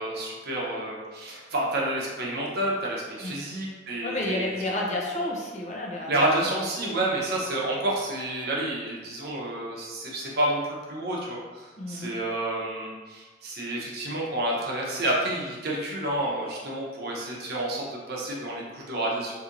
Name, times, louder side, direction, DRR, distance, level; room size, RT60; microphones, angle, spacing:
voice 1, 0.0-4.5 6.1-19.4, right 1 dB, 55° right, -3 dB, 0.8 m, -29 dB
voice 2, 4.0-6.1 11.8-12.1, left 1 dB, 40° left, -2 dB, 0.6 m, -30 dB
4.1 x 2.7 x 2.6 m, 1.3 s
head